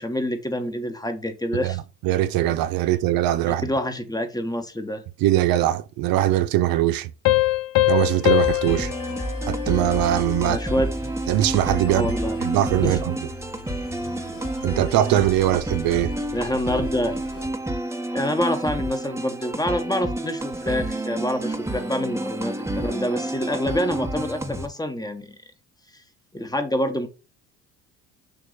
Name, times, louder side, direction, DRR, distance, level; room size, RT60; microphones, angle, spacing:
voice 1, 0.0-1.8 3.5-5.0 10.4-10.9 11.9-12.4 12.8-13.0 16.3-17.2 18.1-25.3 26.3-27.1, left 1 dB, 10° left, 1.3 m, -26 dB
voice 2, 1.6-3.7 5.2-7.1 7.9-8.9 9.5-10.6 11.3-12.1 12.4-13.2 14.6-16.1, right 13 dB, 65° right, 0.7 m, -21 dB
Piano, 7.3-10.5, left 18 dB, 60° left, 0.5 m, -23 dB
sound 1, 8.2-17.5, equal, 35° left, 2.5 m, -35 dB
sound 2, 8.7-24.7, right 1 dB, 5° right, 1.1 m, -30 dB
6.9 x 3.0 x 5.1 m
hypercardioid pair, 65°, 38 cm